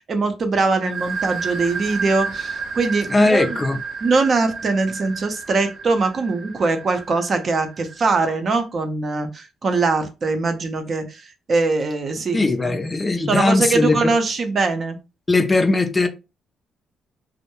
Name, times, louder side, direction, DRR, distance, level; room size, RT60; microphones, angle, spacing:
voice 1, 0.0-3.6 4.0-11.2 11.5-12.7 13.3-15.0, right 3 dB, 45° right, 0.5 m, -22 dB
sound 1, 0.8-8.3, right 5 dB, 75° right, 0.8 m, -32 dB
voice 2, 3.1-3.8 12.3-14.1 15.3-16.1, left 3 dB, 20° left, 0.4 m, -19 dB
2.2 x 2.1 x 2.9 m
cardioid pair, 90°, 0 cm